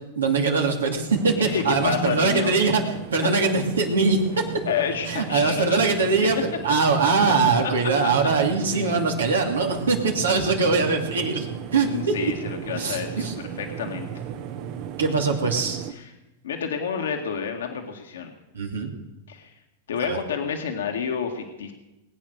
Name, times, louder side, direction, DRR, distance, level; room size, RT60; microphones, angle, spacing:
voice 1, 0.2-2.8 3.1-4.5 5.1-12.1 12.7-13.3 15.0-15.9 18.5-18.9 20.1-20.2, right 4 dB, 90° right, 2 dB, 2.5 m, -22 dB
sound 1, 1.1-15.9, right 9 dB, 55° right, 1.0 m, -36 dB
voice 2, 1.4-2.5 4.7-5.9 8.7-9.0 11.8-13.3 13.6-14.1 16.0-16.1 16.4-18.3 19.3-19.5 19.9-21.7, left 7 dB, 80° left, 3 dB, 1.9 m, -29 dB
20.0 x 8.8 x 6.4 m, 0.99 s
hypercardioid pair, 110°, 0 cm